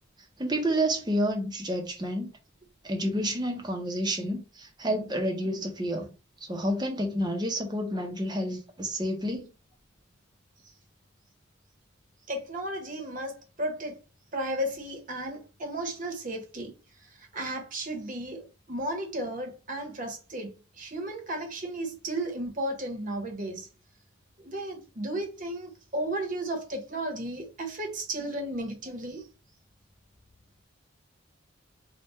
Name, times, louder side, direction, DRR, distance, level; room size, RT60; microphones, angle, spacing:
voice 1, 0.4-2.3 2.8-6.1 6.4-9.5, equal, 20° right, 0.8 m, -29 dB
voice 2, 12.3-14.0 14.3-23.7 24.4-29.3, right 1 dB, 40° right, 1.1 m, -34 dB
3.5 x 2.4 x 4.2 m
head